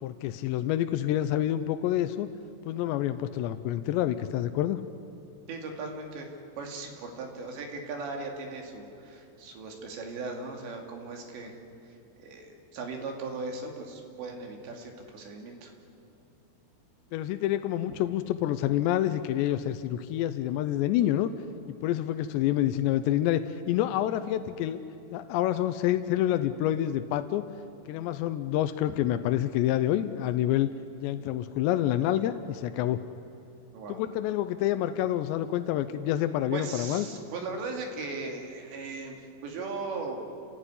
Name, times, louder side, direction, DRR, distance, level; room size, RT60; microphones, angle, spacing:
voice 1, 0.0-2.3 2.7-4.8 17.1-21.3 21.8-24.8 25.1-27.4 27.9-30.7 31.0-33.0 33.9-37.1, left 12 dB, 85° left, 10 dB, 3.0 m, -27 dB
voice 2, 5.5-6.3 6.6-11.5 11.8-11.9 12.2-15.7 33.7-34.0 36.5-40.3, right 3 dB, 80° right, 2 dB, 4.8 m, -38 dB
29.5 x 16.0 x 9.9 m, 2.7 s
omnidirectional pair, 5.0 m